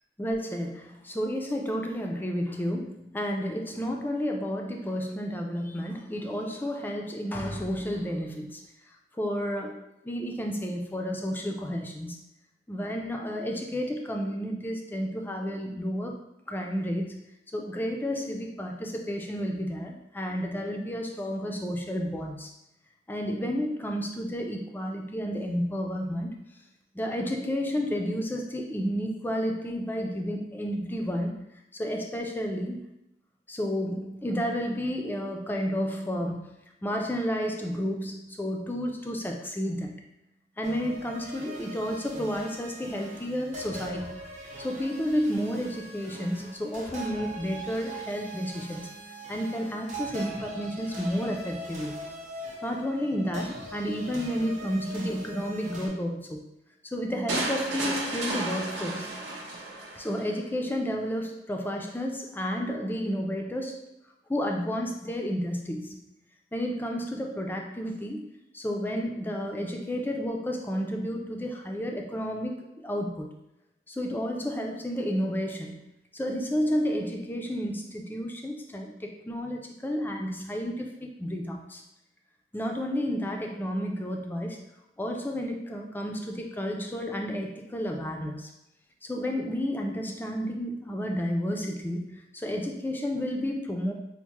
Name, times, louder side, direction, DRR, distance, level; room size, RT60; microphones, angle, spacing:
voice 1, 0.2-8.6 9.2-12.2 12.7-16.2 16.5-22.5 23.1-26.3 26.9-31.3 31.7-32.8 33.5-36.5 36.8-40.1 40.6-44.2 44.6-48.9 49.3-52.0 52.6-56.5 56.8-59.1 60.0-63.9 64.3-66.0 66.5-73.3 73.9-75.8 76.1-81.8 82.5-84.6 85.0-88.5 89.0-93.9, equal, 10° left, 1 dB, 0.3 m, -31 dB
sound 1, 40.6-55.9, right 1 dB, 40° right, 0.7 m, -41 dB
sound 2, 57.3-60.3, right 2 dB, 85° right, 0.7 m, -32 dB
4.4 x 2.0 x 2.9 m, 0.83 s
head